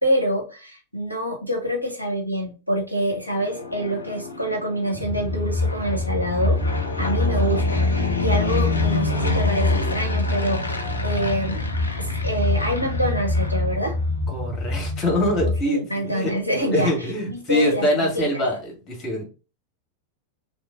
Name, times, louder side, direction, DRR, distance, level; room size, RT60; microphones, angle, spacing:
voice 1, 0.0-6.6 7.0-11.7 12.0-13.9 15.4-16.9 17.3-18.3, equal, 90° right, 2 dB, 0.9 m, -26 dB
Fixed-wing aircraft airplane, 3.1-14.2, left 3 dB, 80° left, 0.5 m, -30 dB
sound 1, 4.9-15.6, left 2 dB, 10° right, 1.1 m, -25 dB
voice 2, 14.3-16.3 16.7-19.2, left 1 dB, 25° left, 1 dB, 1.7 m, -24 dB
3.0 x 2.5 x 3.7 m, 0.33 s
figure-of-eight pair, 90°, 0 cm